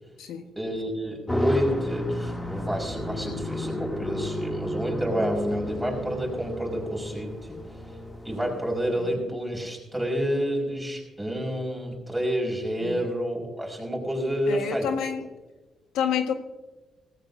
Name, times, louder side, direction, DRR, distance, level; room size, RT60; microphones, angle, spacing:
voice 1, 0.6-7.8 8.2-14.9, equal, 5° right, 0 dB, 5.3 m, -29 dB
sound 1, 1.3-9.0, left 1 dB, 15° left, 2.5 m, -32 dB
voice 2, 14.5-15.2 15.9-16.3, left 8 dB, 90° left, 5 dB, 1.5 m, -28 dB
18.0 x 15.5 x 2.7 m, 1.1 s
cardioid pair, 90°, 0 cm